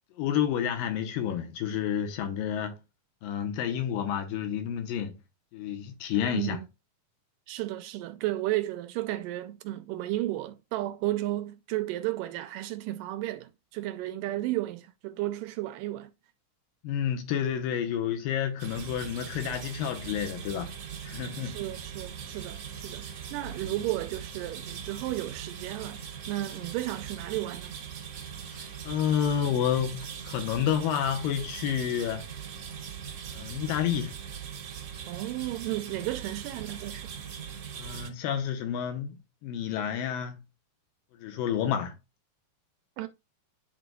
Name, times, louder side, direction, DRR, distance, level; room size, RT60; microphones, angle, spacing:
voice 1, 0.2-2.7 3.2-5.2 5.5-6.6 16.8-20.7 21.0-21.6 23.6-23.8 28.5-32.3 33.3-34.2 37.8-39.2 39.4-40.4 41.2-41.9, left 9 dB, 80° left, 2.6 m, -30 dB
voice 2, 6.3-6.7 7.5-16.1 21.4-27.8 35.1-37.1 43.0-43.1, right 16 dB, 80° right, 2.1 m, -33 dB
sound 1, 18.6-38.1, right 7 dB, 60° right, 1.7 m, -41 dB
11.0 x 3.9 x 2.2 m
omnidirectional pair, 4.0 m